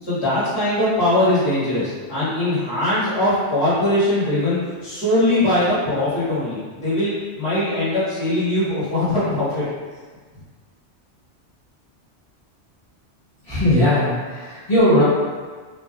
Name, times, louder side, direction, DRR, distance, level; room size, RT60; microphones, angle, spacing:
voice 1, 0.0-9.7, left 1 dB, 25° left, -13 dB, 1.6 m, -21 dB
voice 2, 13.4-15.0, left 1 dB, 50° left, -14 dB, 1.5 m, -18 dB
5.2 x 2.1 x 2.3 m, 1.4 s
omnidirectional pair, 1.2 m